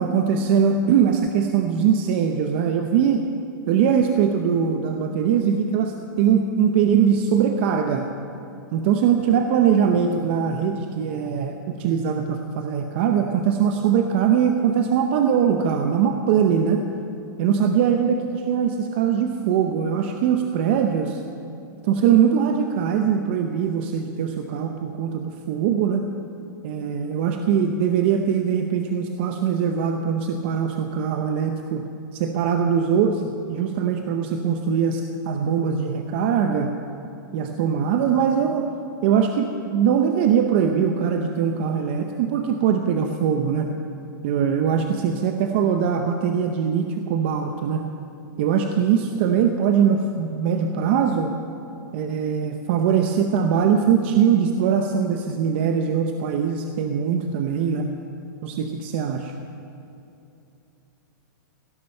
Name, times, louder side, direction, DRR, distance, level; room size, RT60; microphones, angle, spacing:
voice 1, 0.0-3.2 3.7-8.1 8.7-16.8 17.4-21.2 21.8-26.1 26.6-31.9 32.1-36.7 37.3-38.7 39.0-43.7 44.2-47.8 48.4-51.3 51.9-57.9 58.4-59.3, right 7 dB, 35° right, 5 dB, 0.7 m, -21 dB
17.0 x 11.5 x 6.6 m, 2.8 s
supercardioid pair, 175°, 11 cm